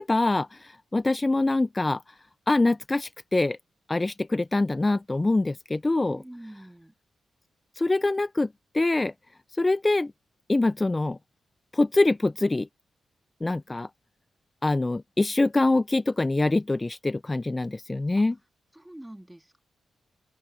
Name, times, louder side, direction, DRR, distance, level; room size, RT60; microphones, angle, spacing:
voice 1, 0.0-2.2 2.5-3.6 3.9-6.2 7.8-9.1 9.5-10.1 10.5-11.2 11.7-12.7 13.4-13.9 14.6-18.4, left 2 dB, 25° left, 0.5 m, -24 dB
voice 2, 6.1-6.9 18.2-18.3 18.7-19.6, right 1 dB, 10° right, 3.2 m, -45 dB
open air
supercardioid pair, 45°, 0 cm